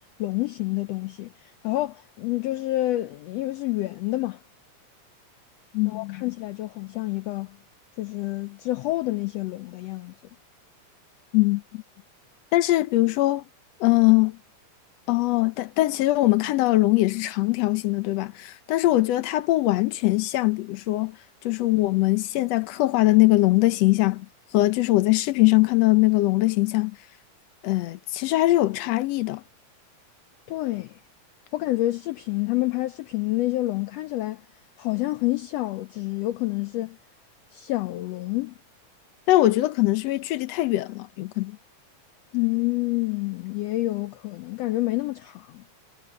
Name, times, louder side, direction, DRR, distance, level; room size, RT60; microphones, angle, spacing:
voice 1, 0.0-4.4 5.9-7.6 8.0-10.2 30.5-31.0 31.5-34.4 34.8-37.0 37.5-38.5 42.3-45.6, left 17 dB, 90° left, 1.4 m, -28 dB
voice 2, 5.7-6.2 11.3-11.8 12.5-13.4 13.8-14.4 15.1-21.2 21.4-24.3 24.5-27.0 27.6-29.4 39.3-41.6, left 18 dB, 70° left, 1.7 m, -21 dB
omnidirectional pair, 3.6 m